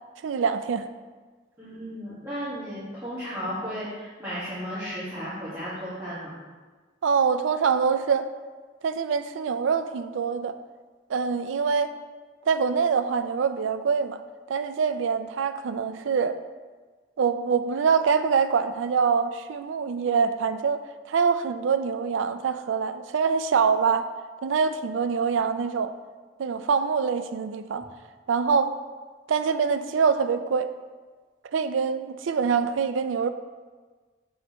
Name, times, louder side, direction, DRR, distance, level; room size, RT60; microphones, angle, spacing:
voice 1, 0.2-0.9 7.0-8.3 8.8-10.5 11.1-11.9 12.5-14.2 14.5-16.4 17.2-20.8 21.1-24.1 24.4-25.9 26.4-27.8 28.3-28.7 29.3-30.7 31.5-33.3, right 6 dB, 80° right, 10 dB, 0.4 m, -24 dB
voice 2, 1.6-6.3, equal, 15° right, -14 dB, 1.7 m, -34 dB
7.3 x 4.8 x 3.0 m, 1.4 s
head